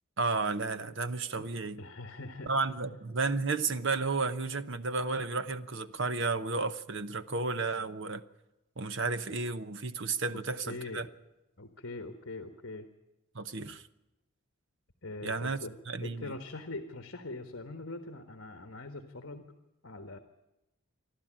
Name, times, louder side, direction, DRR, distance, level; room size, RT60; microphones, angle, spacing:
voice 1, 0.2-1.8 2.5-8.2 8.8-11.1 13.3-13.8 15.2-15.6 15.9-16.3, right 3 dB, 55° right, 1.0 m, -32 dB
voice 2, 1.8-2.5 10.3-10.4 10.7-11.0 11.6-12.9 15.0-15.7 16.0-19.5 19.8-20.2, left 2 dB, 60° left, 1.5 m, -42 dB
27.5 x 12.0 x 8.9 m
head